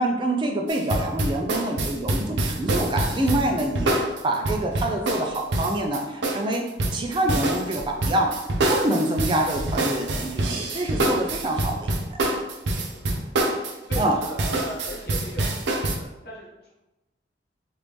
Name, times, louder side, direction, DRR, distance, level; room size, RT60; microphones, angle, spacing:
voice 1, 0.0-6.7 6.9-8.4 8.7-11.9 14.0-14.2, right 1 dB, 25° right, 2 dB, 0.4 m, -26 dB
sound 1, 0.7-16.0, right 2 dB, 80° right, 0.5 m, -25 dB
voice 2, 13.9-15.9 16.2-16.5, equal, 60° left, -4 dB, 1.0 m, -37 dB
3.1 x 2.6 x 3.4 m, 1.0 s
head